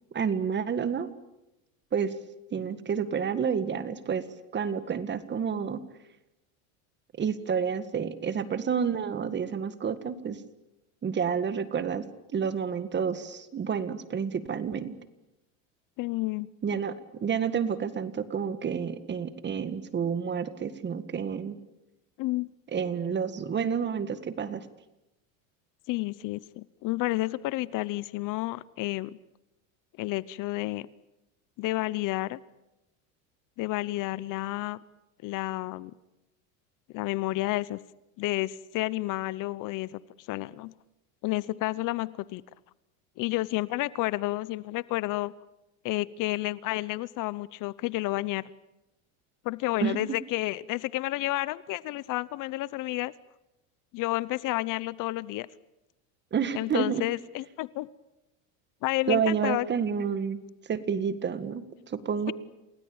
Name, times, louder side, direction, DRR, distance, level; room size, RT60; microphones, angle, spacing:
voice 1, 0.1-1.1 1.9-2.1 2.5-4.2 4.5-5.8 7.2-10.4 11.0-12.1 12.3-14.9 16.6-16.9 17.2-21.6 22.7-24.6 49.8-50.2 56.3-57.0 59.1-60.4 60.7-62.3, right 7 dB, 25° right, 13 dB, 1.8 m, -29 dB
voice 2, 16.0-16.5 22.2-22.5 25.9-29.2 30.0-30.9 31.6-32.4 33.6-34.8 35.2-35.9 36.9-37.8 38.2-40.7 41.2-42.4 43.2-45.3 45.8-48.5 49.4-53.1 53.9-55.5 56.5-57.9 58.8-59.7, left 18 dB, 50° left, 20 dB, 0.8 m, -30 dB
29.0 x 19.0 x 8.8 m, 0.95 s
supercardioid pair, 120°, 39 cm